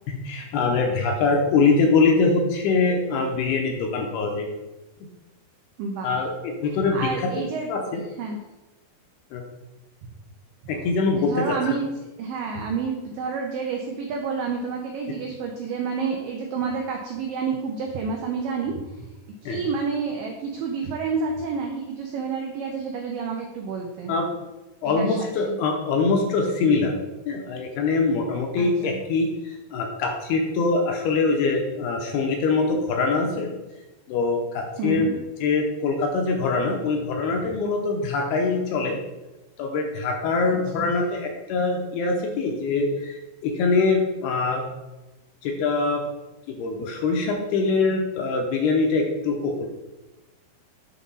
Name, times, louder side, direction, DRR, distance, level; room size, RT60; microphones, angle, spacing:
voice 1, 0.1-4.5 6.0-7.1 7.7-8.0 9.3-9.4 10.7-11.7 19.5-19.6 24.1-24.3 24.8-26.9 27.3-33.5 34.1-35.1 35.4-39.0 39.6-44.7 45.4-46.0 46.5-49.7, left 4 dB, 80° left, 2 dB, 2.5 m, -23 dB
voice 2, 5.8-6.2 6.9-7.7 8.2-8.4 11.2-11.9 12.2-19.1 19.4-24.1 24.8-25.6 28.6-29.0 34.8-35.2 40.7-40.9, right 5 dB, 85° right, 1 dB, 1.9 m, -29 dB
8.1 x 3.6 x 5.5 m, 1.1 s
omnidirectional pair, 5.0 m